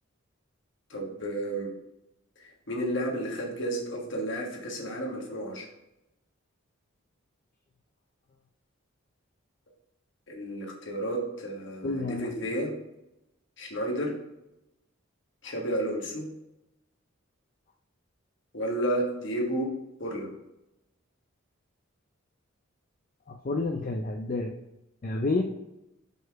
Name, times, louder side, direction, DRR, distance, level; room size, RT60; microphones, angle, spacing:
voice 1, 0.9-1.7 2.4-5.7 10.3-12.7 13.6-14.1 15.4-16.3 18.5-19.7 20.0-20.3, right 1 dB, 60° left, 0 dB, 1.3 m, -32 dB
voice 2, 11.8-12.3 23.3-24.5 25.0-25.4, left 3 dB, 40° left, 3 dB, 0.4 m, -29 dB
5.2 x 4.0 x 4.5 m, 0.90 s
head